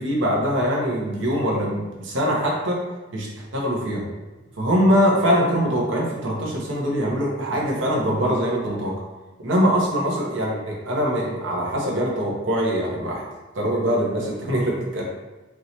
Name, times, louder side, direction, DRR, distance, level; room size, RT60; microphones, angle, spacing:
voice 1, 0.0-2.8 3.1-3.3 3.5-4.0 4.6-8.9 9.4-13.2 13.5-15.0, equal, 85° right, -3 dB, 1.0 m, -22 dB
4.7 x 3.0 x 2.8 m, 1.2 s
head